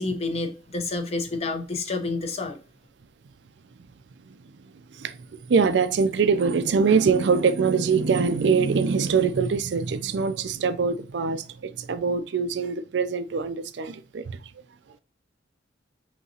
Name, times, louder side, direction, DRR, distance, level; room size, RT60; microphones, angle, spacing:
voice 1, 0.0-2.6, left 3 dB, 35° left, 0.7 m, -29 dB
voice 2, 5.5-14.4, right 5 dB, 65° right, 0.4 m, -23 dB
5.3 x 2.9 x 2.8 m
head